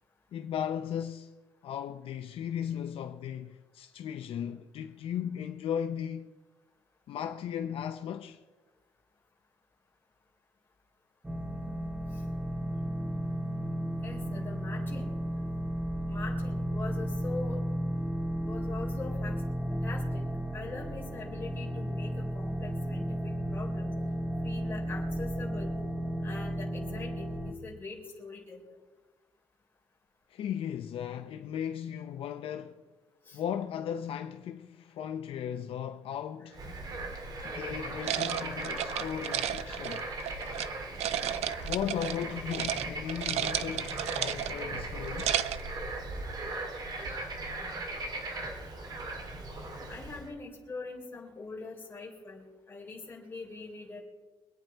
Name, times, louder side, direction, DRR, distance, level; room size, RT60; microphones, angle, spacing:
voice 1, 0.3-1.4 1.6-6.3 7.1-8.4 30.3-32.8 33.3-36.6 37.4-40.1 41.6-45.4, left 9 dB, 60° left, 0.6 m, -36 dB
sound 1, 11.2-27.5, equal, 10° right, 0.9 m, -33 dB
voice 2, 14.0-15.1 16.1-17.6 18.5-19.4 19.7-20.2 20.5-23.9 24.4-25.7 26.2-28.6 33.2-33.4 49.9-54.0, left 3 dB, 20° left, 3.9 m, -43 dB
Bird / Frog, 36.5-50.3, right 2 dB, 35° right, 2.3 m, -38 dB
sound 2, 38.0-40.7 41.0-42.2 42.5-42.8 43.1-44.6 45.0-45.7, right 11 dB, 80° right, 0.6 m, -32 dB
25.0 x 9.1 x 4.5 m
cardioid pair, 175°, 11 cm